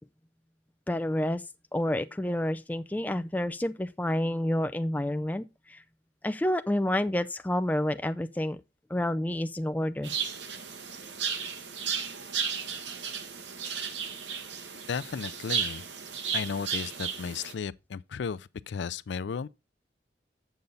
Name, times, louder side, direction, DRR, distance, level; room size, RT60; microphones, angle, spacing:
voice 1, 0.9-1.4 1.7-5.8 6.2-8.6 8.9-10.1, left 1 dB, 10° left, 0.4 m, -29 dB
sound 1, 10.0-17.5, right 6 dB, 90° right, 1.3 m, -34 dB
voice 2, 14.7-15.8 16.3-19.5, left 6 dB, 90° left, 0.4 m, -34 dB
8.0 x 7.1 x 3.8 m
head